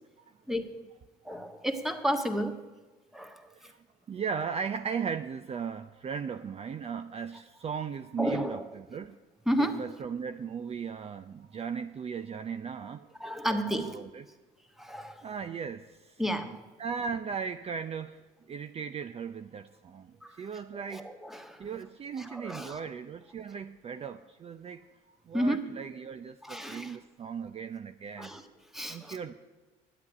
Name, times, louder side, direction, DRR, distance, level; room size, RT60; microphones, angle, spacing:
voice 1, 0.5-0.8 1.2-2.6 3.1-3.4 8.2-8.6 9.5-9.9 12.8-12.9 13.2-14.0 14.8-15.3 16.2-16.6 20.2-20.4 20.7-21.7 22.2-22.8 25.3-25.8 26.4-27.0 28.2-28.4 28.7-29.2, equal, ahead, 6 dB, 1.5 m, -32 dB
voice 2, 1.3-1.6 3.5-9.1 9.6-13.0 13.5-14.3 15.2-16.2 16.8-21.1 21.6-28.4 28.9-29.3, right 6 dB, 35° right, 10 dB, 0.5 m, -37 dB
10.0 x 8.2 x 9.7 m, 1.3 s
supercardioid pair, 85°, 17 cm